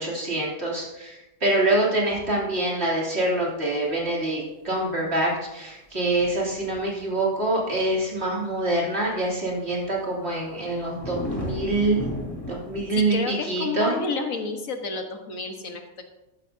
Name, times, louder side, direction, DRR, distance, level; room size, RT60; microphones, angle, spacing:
voice 1, 0.0-12.1 12.5-13.9, right 2 dB, 45° right, -3 dB, 3.3 m, -25 dB
sound 1, 6.1-7.2 7.7-8.0 9.0-9.1 10.2-13.0, left 1 dB, 15° left, 3.2 m, -34 dB
voice 2, 13.0-16.0, left 4 dB, 65° left, 4 dB, 1.7 m, -30 dB
14.5 x 12.0 x 2.8 m, 0.96 s
omnidirectional pair, 1.5 m